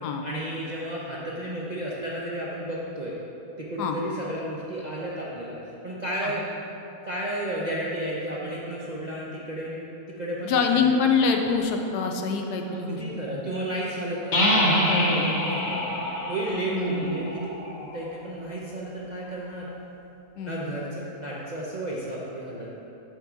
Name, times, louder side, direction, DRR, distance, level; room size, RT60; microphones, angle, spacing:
voice 1, 0.2-3.2 3.6-6.5 7.0-9.9 10.2-10.9 12.7-14.3 15.0-15.8 16.3-17.5 17.8-19.7 20.4-22.7, right 1 dB, 50° right, -7 dB, 0.5 m, -32 dB
voice 2, 10.4-13.0 14.9-15.6 16.7-17.1 20.4-20.6, left 5 dB, 85° left, 3 dB, 1.2 m, -25 dB
sound 1, 14.3-18.0, left 1 dB, 50° left, 1.2 m, -25 dB
7.0 x 3.7 x 6.0 m, 3.0 s
omnidirectional pair, 1.7 m